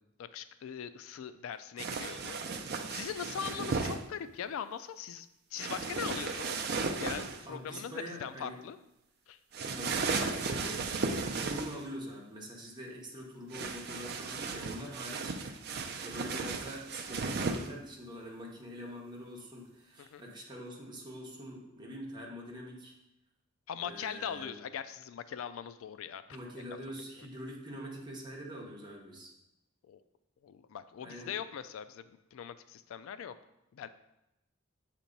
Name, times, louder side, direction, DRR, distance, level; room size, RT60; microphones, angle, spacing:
voice 1, 0.2-2.4 2.7-6.7 7.0-8.8 9.3-9.4 20.0-20.2 23.7-26.2 27.0-27.1 29.9-30.0 30.4-33.3 33.7-33.9, left 8 dB, 75° left, 12 dB, 0.3 m, -41 dB
sound 1, 1.8-4.0 5.6-7.4 9.5-11.8 13.5-17.7, right 4 dB, 50° right, 0.5 m, -35 dB
voice 2, 3.4-3.7 7.5-8.6 9.6-15.4 16.0-22.9 23.8-24.6 26.3-29.3 31.0-31.3, equal, 20° right, -3 dB, 1.1 m, -44 dB
7.0 x 3.0 x 5.2 m, 0.88 s
head